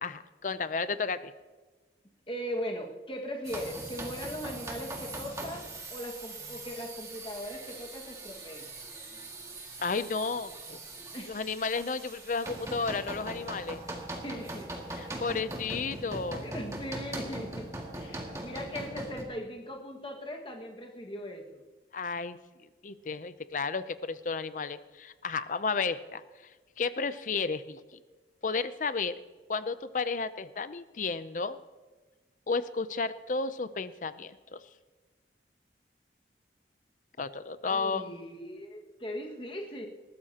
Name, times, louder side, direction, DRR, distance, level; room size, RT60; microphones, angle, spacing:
voice 1, 0.0-1.3 9.8-10.8 11.3-13.8 14.9-16.5 21.9-22.4 22.8-26.2 26.8-27.8 28.4-29.2 29.5-31.6 32.5-34.6 37.2-38.1, left 4 dB, 45° left, 13 dB, 0.5 m, -32 dB
voice 2, 2.3-8.6 11.1-11.3 13.9-14.0 14.2-14.7 15.1-15.2 16.4-21.6 37.7-39.9, equal, 30° left, 1 dB, 1.8 m, -39 dB
sound 1, 3.4-19.2, right 2 dB, 20° right, 2.0 m, -41 dB
20.5 x 14.5 x 2.9 m, 1.3 s
head